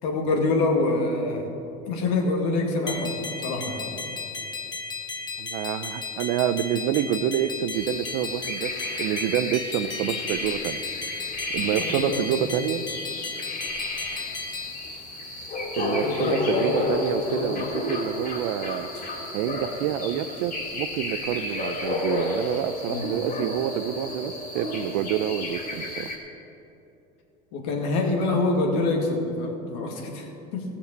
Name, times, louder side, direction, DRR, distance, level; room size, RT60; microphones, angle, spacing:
voice 1, 0.0-1.5 1.9-3.9 11.8-12.2 15.8-16.4 16.7-17.7 22.9-23.3 27.5-30.6, left 2 dB, 80° left, 1 dB, 2.2 m, -26 dB
sound 1, 2.9-14.7, left 4 dB, 20° left, 1.2 m, -35 dB
voice 2, 5.4-10.8 11.5-12.8 15.8-18.9 19.3-26.1, right 11 dB, 70° right, 13 dB, 0.6 m, -28 dB
sound 2, 7.7-26.2, left 2 dB, 45° left, 3.1 m, -32 dB
15.0 x 7.1 x 6.7 m, 2.9 s
supercardioid pair, 105°, 21 cm